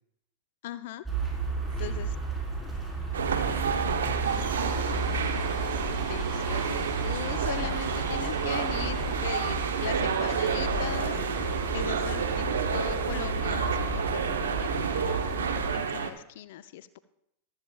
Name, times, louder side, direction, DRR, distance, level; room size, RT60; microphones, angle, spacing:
voice 1, 0.6-1.0 1.6-2.1 6.0-15.3 15.7-17.0, left 13 dB, 65° left, 14 dB, 0.6 m, -40 dB
sound 1, 1.1-15.8, right 2 dB, ahead, 4.3 m, -33 dB
voice 2, 1.6-2.0 2.4-5.1, right 1 dB, 60° right, 0 dB, 4.9 m, -47 dB
sound 2, 3.1-16.1, right 6 dB, 80° right, 0.9 m, -30 dB
sound 3, 4.2-14.5, right 3 dB, 25° right, 3.6 m, -44 dB
14.5 x 13.0 x 2.4 m, 0.78 s
hypercardioid pair, 100°, 0 cm